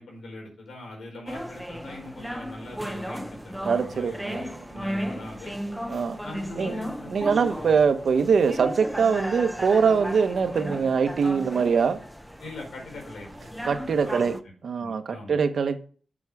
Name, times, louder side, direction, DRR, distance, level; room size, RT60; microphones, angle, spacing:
voice 1, 0.0-5.6 6.2-7.7 12.4-13.6 14.0-14.5 14.8-15.4, left 2 dB, 80° left, 4.4 m, -42 dB
sound 1, 1.3-14.4, equal, ahead, 0.6 m, -35 dB
voice 2, 3.6-4.4 5.9-6.2 6.6-6.7 7.1-12.0 13.6-14.3 14.6-15.8, right 6 dB, 65° right, 1.0 m, -23 dB
7.3 x 6.3 x 4.7 m
wide cardioid pair, 145°, 0 cm